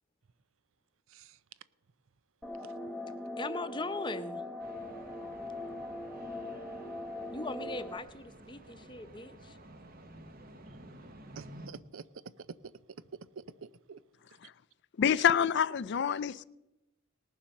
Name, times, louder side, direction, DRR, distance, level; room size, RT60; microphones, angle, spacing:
sound 1, 2.4-8.0, left 1 dB, ahead, 1.0 m, -40 dB
voice 1, 3.4-4.4 7.3-9.6, left 3 dB, 25° left, 0.7 m, -39 dB
sound 2, 4.6-11.7, right 1 dB, 45° right, 1.1 m, -52 dB
voice 2, 11.3-12.1 12.5-12.7 13.1-14.0, right 5 dB, 85° right, 0.6 m, -47 dB
voice 3, 15.0-16.4, left 8 dB, 55° left, 0.4 m, -27 dB
18.5 x 7.2 x 6.5 m
head